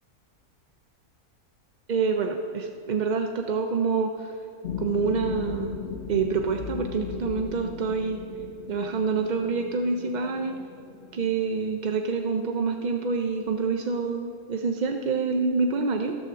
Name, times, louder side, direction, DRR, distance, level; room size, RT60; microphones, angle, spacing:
voice 1, 1.9-4.4 4.8-5.8 6.1-8.2 8.7-10.6 11.1-16.2, right 4 dB, 55° right, 4 dB, 0.5 m, -27 dB
sound 1, 4.6-11.4, left 8 dB, 60° left, 0.8 m, -37 dB
14.5 x 6.4 x 6.8 m, 2.7 s
omnidirectional pair, 1.4 m